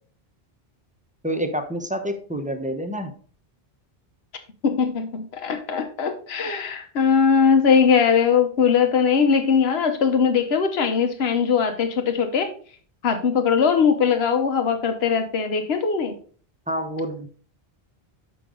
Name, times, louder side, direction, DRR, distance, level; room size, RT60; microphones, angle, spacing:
voice 1, 1.2-3.1 16.7-17.3, right 1 dB, 10° right, 5 dB, 0.8 m, -28 dB
voice 2, 4.6-12.5 13.0-16.1, left 6 dB, 75° left, 7 dB, 1.2 m, -20 dB
6.9 x 5.9 x 3.8 m, 0.43 s
omnidirectional pair, 1.1 m